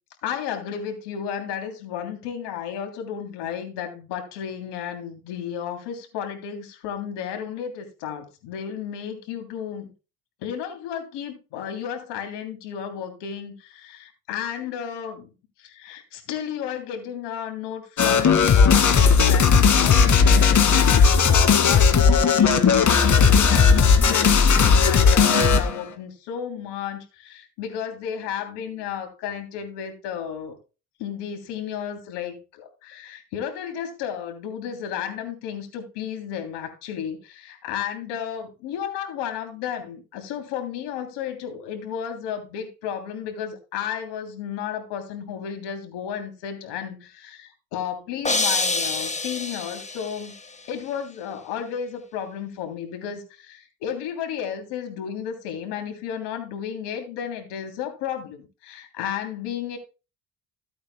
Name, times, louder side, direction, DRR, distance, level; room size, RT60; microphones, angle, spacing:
voice 1, 0.2-9.9 10.4-15.3 15.6-30.5 31.0-50.3 50.7-59.8, left 8 dB, 85° left, 3.2 m, -33 dB
sound 1, 18.0-25.8, left 6 dB, 45° left, 2.2 m, -16 dB
sound 2, 48.2-50.3, left 3 dB, 15° left, 1.5 m, -26 dB
15.5 x 8.7 x 2.2 m
supercardioid pair, 70°, 41 cm